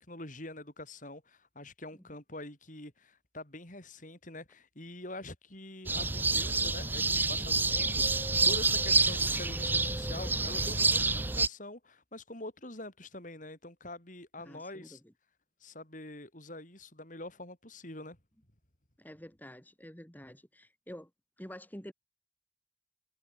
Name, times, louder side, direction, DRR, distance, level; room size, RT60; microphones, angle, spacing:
voice 1, 0.0-15.0 15.6-18.2, left 2 dB, 45° left, 6.3 m, -45 dB
sound 1, 5.9-11.5, right 3 dB, 10° right, 0.6 m, -28 dB
voice 2, 14.4-15.0 19.0-21.1 21.4-21.9, equal, 10° left, 4.5 m, -48 dB
head